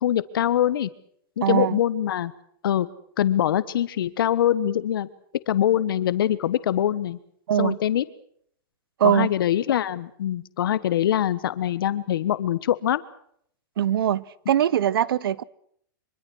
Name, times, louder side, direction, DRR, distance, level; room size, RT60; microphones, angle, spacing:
voice 1, 0.0-0.9 1.4-2.3 2.6-2.9 3.2-5.1 5.5-7.2 7.6-8.0 9.0-13.0, left 11 dB, 80° left, 1.3 m, -23 dB
voice 2, 1.4-1.8 7.5-7.8 9.0-9.3 13.8-15.4, right 10 dB, 85° right, 0.9 m, -22 dB
24.5 x 23.5 x 6.3 m
supercardioid pair, 155°, 12 cm